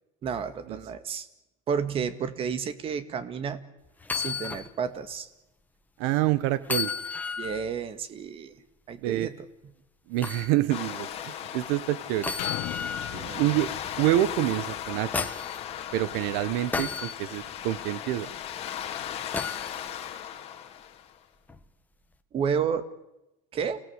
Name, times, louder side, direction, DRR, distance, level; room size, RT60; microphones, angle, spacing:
voice 1, 0.2-1.3 1.7-3.6 4.1-5.3 7.4-8.6 8.9-9.7 13.1-13.7 22.3-22.9 23.5-23.8, right 6 dB, 30° right, 12 dB, 1.9 m, -31 dB
sound 1, 4.0-4.7 5.1-5.2 6.6-7.6 10.2-10.5 12.2-13.2 14.6-15.6 16.7-17.1 19.3-19.7 21.5-21.6, left 5 dB, 10° left, 1.5 m, -32 dB
voice 2, 6.0-6.9 9.0-9.3 10.1-12.3 13.3-13.7 14.0-15.3 15.9-18.3, right 15 dB, 70° right, 16 dB, 1.2 m, -27 dB
sound 2, 10.7-21.2, left 10 dB, 35° left, 2.9 m, -37 dB
sound 3, 12.4-16.2 16.7-16.8, left 16 dB, 65° left, 1.6 m, -40 dB
30.0 x 18.0 x 8.2 m, 0.93 s
cardioid pair, 155°, 18 cm